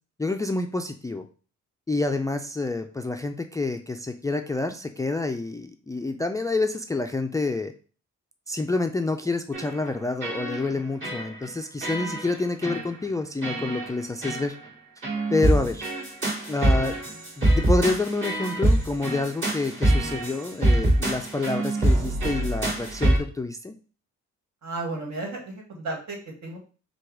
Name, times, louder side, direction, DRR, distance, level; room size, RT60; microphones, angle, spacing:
voice 1, 0.2-1.2 1.9-7.7 8.5-14.6 15.3-15.8 16.5-17.0 17.4-23.7, left 3 dB, 10° left, 7 dB, 0.3 m, -28 dB
sound 1, 9.5-9.9 10.2-10.8 11.0-11.5 11.8-12.3 12.6-12.9 13.4-13.9 14.2-14.5 15.0-23.2, right 1 dB, 40° right, 2.3 m, -24 dB
voice 2, 24.6-26.6, right 2 dB, 65° right, 0 dB, 1.8 m, -33 dB
4.6 x 2.3 x 4.6 m, 0.37 s
cardioid pair, 90°, 30 cm